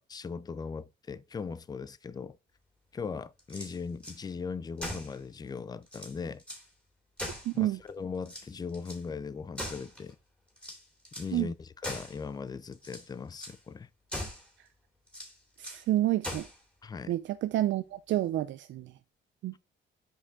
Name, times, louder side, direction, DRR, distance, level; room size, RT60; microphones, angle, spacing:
voice 1, 0.0-2.4 2.9-6.4 7.5-10.2 11.2-13.9 16.8-17.1, left 5 dB, 20° left, 0.4 m, -39 dB
sound 1, 3.4-4.2 4.8-5.2 5.6-5.7 5.9-6.7 7.2-7.9 8.2-9.0 9.6-10.1 10.6-11.3 11.8-12.2 12.7-13.1 13.4-13.6 14.1-14.5 15.1-15.8 16.2-16.6, left 1 dB, 5° left, 2.8 m, -40 dB
voice 2, 7.5-7.8 11.3-11.5 15.6-16.5 17.1-18.9 19.4-19.6, right 14 dB, 70° right, 0.4 m, -29 dB
6.6 x 4.9 x 3.7 m
cardioid pair, 90°, 20 cm